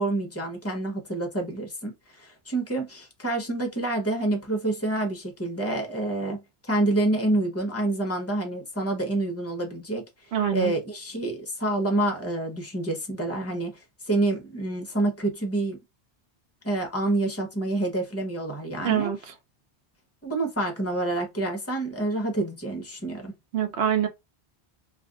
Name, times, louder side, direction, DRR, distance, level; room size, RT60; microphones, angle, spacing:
voice 1, 0.0-10.0 10.5-15.8 16.6-19.1 20.2-23.3, right 2 dB, 15° left, 0.8 m, -28 dB
voice 2, 10.3-10.7 18.8-19.3 23.5-24.1, right 9 dB, 75° right, 1.0 m, -25 dB
2.5 x 2.4 x 3.5 m
omnidirectional pair, 1.1 m